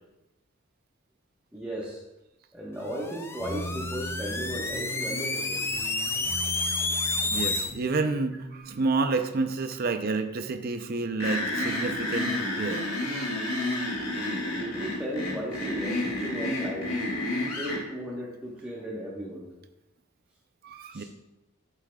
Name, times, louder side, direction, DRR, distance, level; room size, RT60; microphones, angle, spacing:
voice 1, 1.5-2.0 2.5-5.7 14.5-17.1 17.4-19.5 20.9-21.0, equal, 10° right, -5 dB, 1.1 m, -36 dB
sound 1, 2.9-7.7, left 3 dB, 10° left, 0.4 m, -30 dB
sound 2, 3.4-8.6, right 1 dB, 40° left, 2.2 m, -39 dB
voice 2, 7.3-12.8 20.6-21.0, right 3 dB, 45° right, 7 dB, 0.5 m, -29 dB
sound 3, 11.2-17.8, left 1 dB, 80° left, 2.5 m, -30 dB
11.0 x 8.2 x 2.3 m, 0.95 s
head